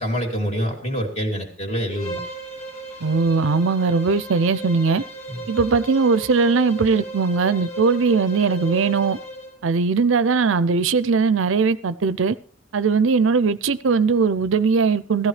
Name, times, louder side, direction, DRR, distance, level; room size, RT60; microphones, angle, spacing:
voice 1, 0.0-2.2 5.3-5.4, equal, 35° left, 2.9 m, -26 dB
Bowed string instrument, 1.9-9.6, right 1 dB, 85° left, 3.0 m, -35 dB
voice 2, 3.0-5.0 5.5-9.2 9.6-12.4 12.7-15.3, right 4 dB, 70° right, 0.5 m, -19 dB
16.0 x 14.0 x 3.3 m
head